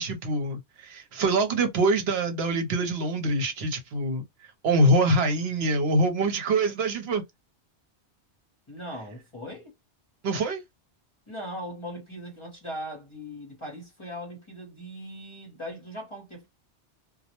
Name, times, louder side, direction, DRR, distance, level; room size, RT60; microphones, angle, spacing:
voice 1, 0.0-7.2 10.2-10.6, right 2 dB, 70° right, 0.9 m, -25 dB
voice 2, 8.7-9.7 11.3-16.5, equal, 30° left, 0.7 m, -39 dB
2.1 x 2.0 x 2.8 m
omnidirectional pair, 1.1 m